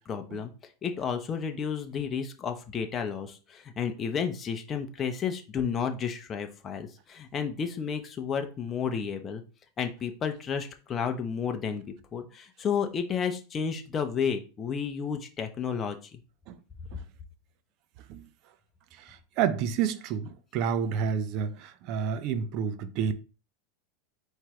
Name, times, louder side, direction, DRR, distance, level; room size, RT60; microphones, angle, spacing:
voice 1, 0.1-0.5 0.8-9.4 9.8-11.8 12.1-16.2, left 7 dB, 25° left, 0.8 m, -32 dB
voice 2, 18.9-23.1, right 7 dB, 50° right, 0.6 m, -30 dB
4.5 x 3.2 x 3.6 m
supercardioid pair, 130°, 0 cm